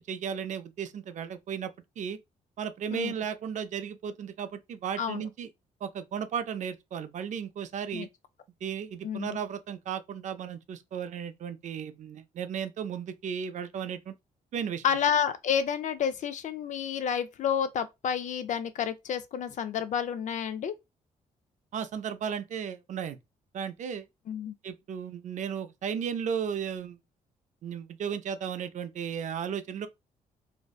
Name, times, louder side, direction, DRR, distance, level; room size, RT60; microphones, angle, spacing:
voice 1, 0.0-1.7 2.0-2.2 2.6-5.5 5.8-8.1 8.6-14.2 14.5-14.8 21.7-23.2 23.5-24.1 24.6-27.0 27.6-29.9, right 7 dB, 60° right, 0.4 m, -35 dB
voice 2, 9.0-9.4 14.8-20.7 24.3-24.6, left 8 dB, 60° left, 0.4 m, -30 dB
2.6 x 2.1 x 2.3 m
cardioid pair, 85°, 14 cm